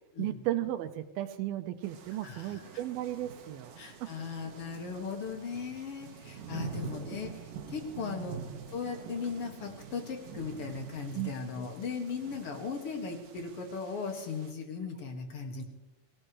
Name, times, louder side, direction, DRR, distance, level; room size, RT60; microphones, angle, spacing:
voice 1, 0.2-4.1 6.6-7.1 8.0-8.3 11.1-11.3, right 14 dB, 85° right, 10 dB, 2.7 m, -35 dB
sound 1, 1.8-14.5, right 7 dB, 70° right, 2.9 m, -46 dB
voice 2, 2.2-2.6 3.8-7.3 7.7-8.4 8.7-15.6, left 5 dB, 45° left, 3 dB, 2.5 m, -37 dB
24.0 x 16.5 x 3.2 m, 1.1 s
omnidirectional pair, 4.2 m